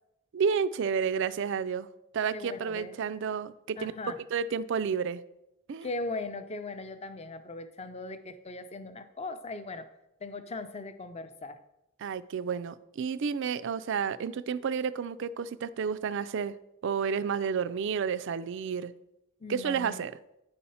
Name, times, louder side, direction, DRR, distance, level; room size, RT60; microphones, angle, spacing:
voice 1, 0.3-1.9 2.1-3.9 4.3-5.2 5.7-5.9 12.0-16.6 16.8-18.9 19.5-20.1, right 6 dB, 55° right, 15 dB, 0.3 m, -31 dB
voice 2, 2.3-3.0 3.8-4.2 5.8-9.9 10.2-11.6 19.4-20.1, left 2 dB, 30° left, 10 dB, 0.5 m, -39 dB
9.3 x 4.3 x 5.5 m, 0.87 s
head